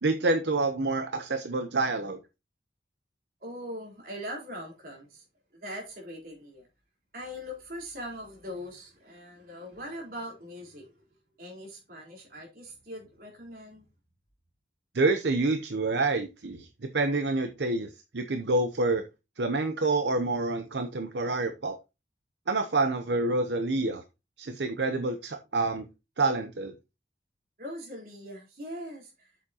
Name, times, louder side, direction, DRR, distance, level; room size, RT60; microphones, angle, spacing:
voice 1, 0.0-2.2 14.9-16.7 16.9-19.0 19.4-21.8 22.5-24.0 24.4-25.9 26.2-26.7, right 2 dB, 75° right, 0.8 m, -27 dB
voice 2, 3.4-5.2 5.5-6.7 7.1-11.0 11.4-13.9 27.6-29.3, equal, 55° right, 4.0 m, -41 dB
8.6 x 7.2 x 2.9 m
head